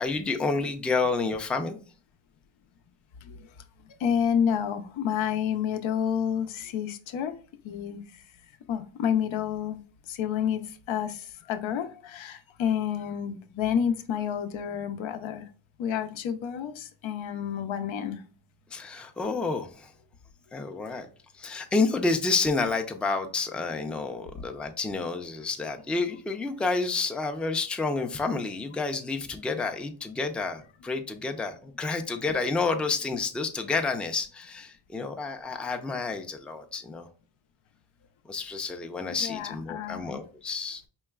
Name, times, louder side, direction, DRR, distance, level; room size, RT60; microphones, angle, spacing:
voice 1, 0.0-1.8 18.7-19.9 20.5-21.1 21.4-37.1 38.3-40.9, left 3 dB, 5° left, 5 dB, 0.3 m, -29 dB
voice 2, 4.0-7.3 7.6-8.0 8.7-9.8 10.1-10.6 10.9-15.4 15.8-18.2 39.1-40.2, left 8 dB, 80° left, 8 dB, 0.6 m, -29 dB
4.6 x 3.1 x 2.3 m, 0.39 s
cardioid pair, 75°, 46 cm